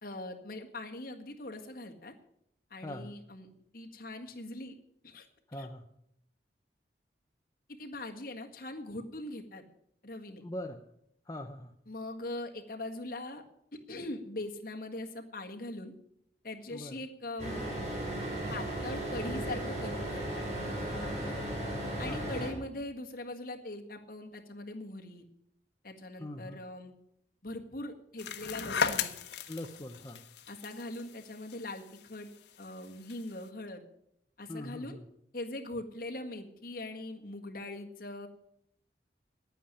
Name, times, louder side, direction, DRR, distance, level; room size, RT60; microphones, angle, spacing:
voice 1, 0.0-2.1 2.7-4.7 5.0-5.3 5.5-5.7 7.7-9.6 10.0-10.4 11.9-13.4 13.9-15.9 16.4-17.6 18.5-20.4 20.9-21.3 22.0-25.3 25.8-26.9 27.4-29.1 30.5-32.3 32.6-33.8 34.4-35.0 35.3-38.3, left 2 dB, 50° left, 3 dB, 1.7 m, -41 dB
voice 2, 2.8-3.1 5.5-5.8 10.4-10.8 11.3-11.7 16.7-17.0 21.3-21.5 22.0-22.5 26.2-26.6 29.5-30.2 34.5-35.1, left 1 dB, 20° left, 4 dB, 0.6 m, -42 dB
sound 1, 17.4-22.5, right 1 dB, 40° right, 4.3 m, -35 dB
sound 2, 28.2-33.4, left 6 dB, 75° left, 1.0 m, -37 dB
10.5 x 9.2 x 10.0 m, 0.76 s
head